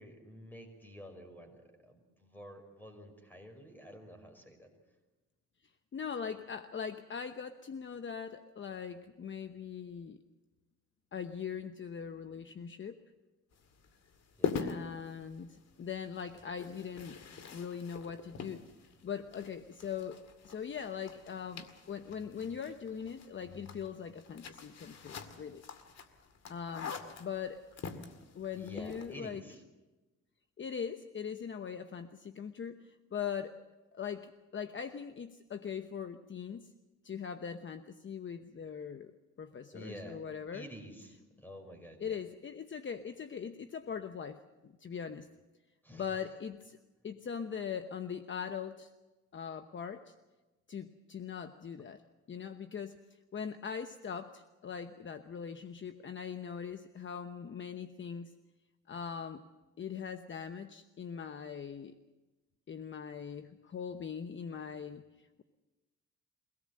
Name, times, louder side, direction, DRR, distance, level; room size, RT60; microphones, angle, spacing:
voice 1, 0.0-4.7 14.4-14.6 28.5-29.6 39.7-40.2 40.5-42.2 45.8-46.2, equal, 5° left, 5 dB, 5.4 m, -50 dB
voice 2, 5.9-10.2 11.1-13.0 14.6-17.2 17.5-18.6 19.0-20.2 20.4-25.6 26.5-26.9 27.2-27.6 28.3-29.4 30.6-33.6 33.9-36.7 37.0-39.1 39.4-40.7 42.0-45.3 45.9-46.8 47.0-48.9 49.3-50.1 50.7-52.0 52.3-53.0 53.3-58.3 58.9-59.4 59.8-61.9 62.7-65.4, left 7 dB, 40° left, 9 dB, 1.0 m, -41 dB
sound 1, 13.5-29.2, left 6 dB, 60° left, 2.2 m, -44 dB
23.5 x 18.0 x 7.7 m, 1.1 s
cardioid pair, 90°, 30 cm